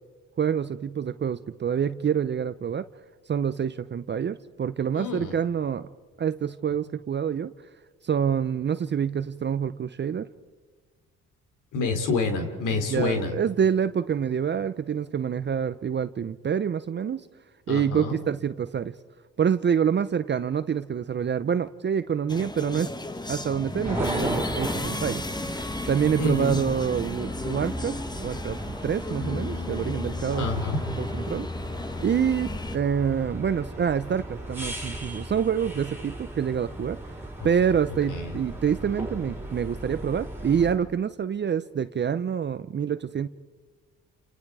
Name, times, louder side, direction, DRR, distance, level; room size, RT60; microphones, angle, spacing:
voice 1, 0.4-2.9 3.3-5.9 6.2-7.5 8.0-10.3 12.8-17.2 17.7-19.0 19.4-22.9 23.3-30.5 31.0-31.5 32.0-37.0 37.4-43.3, right 7 dB, 35° right, 13 dB, 0.7 m, -27 dB
voice 2, 4.9-5.4 11.7-13.3 17.7-18.2 26.2-26.6 30.4-30.9 37.4-37.5 38.1-38.3, left 3 dB, 85° left, 5 dB, 3.7 m, -28 dB
sound 1, 22.3-32.8, left 2 dB, 15° left, 1.2 m, -34 dB
sound 2, 23.8-40.7, right 1 dB, 5° right, 4.2 m, -37 dB
Bass guitar, 29.2-35.5, left 4 dB, 55° left, 2.2 m, -38 dB
29.0 x 29.0 x 4.8 m, 1.4 s
cardioid pair, 90°, 30 cm